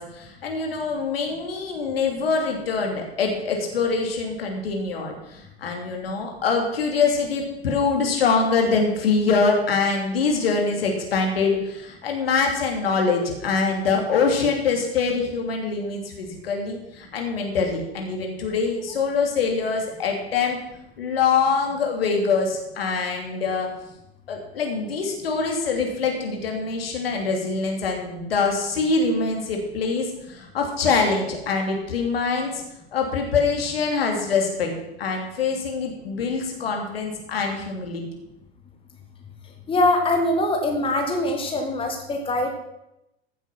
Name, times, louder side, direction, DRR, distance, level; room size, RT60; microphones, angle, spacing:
voice 1, 0.0-20.6 21.0-23.7 24.3-32.6 32.9-34.7 35.0-38.0, left 4 dB, 65° left, 2 dB, 3.0 m, -24 dB
voice 2, 39.7-42.5, left 2 dB, 15° left, 3 dB, 1.7 m, -23 dB
14.5 x 8.1 x 5.9 m, 0.88 s
figure-of-eight pair, 85°, 32 cm